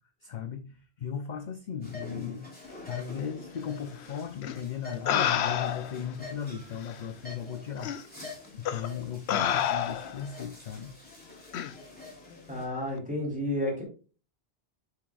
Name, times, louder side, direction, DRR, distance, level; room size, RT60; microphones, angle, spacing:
voice 1, 0.2-10.9, left 8 dB, 50° left, 8 dB, 0.7 m, -37 dB
sound 1, 1.8-12.7, left 3 dB, 10° left, 3.1 m, -46 dB
sound 2, 4.4-4.5 5.1-6.0 6.9-7.0 7.8-8.0 8.6-8.9 9.3-10.2 11.5-11.7, left 9 dB, 80° left, 0.9 m, -28 dB
voice 2, 12.5-13.8, left 1 dB, 5° right, -2 dB, 2.9 m, -31 dB
7.6 x 7.1 x 2.4 m, 0.36 s
omnidirectional pair, 1.1 m